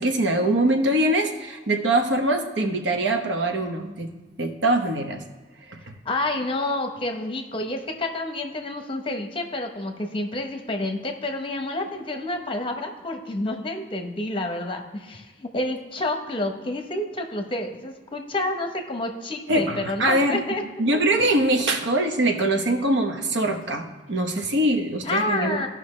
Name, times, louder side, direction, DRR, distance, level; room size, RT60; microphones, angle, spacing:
voice 1, 0.0-4.1 4.4-5.2 5.7-5.9 19.5-20.4 20.8-25.6, right 1 dB, 85° right, 5 dB, 1.0 m, -23 dB
voice 2, 6.0-20.6 20.9-21.0 25.0-25.7, left 2 dB, 30° left, 4 dB, 0.9 m, -29 dB
15.0 x 5.5 x 3.2 m, 1.3 s
head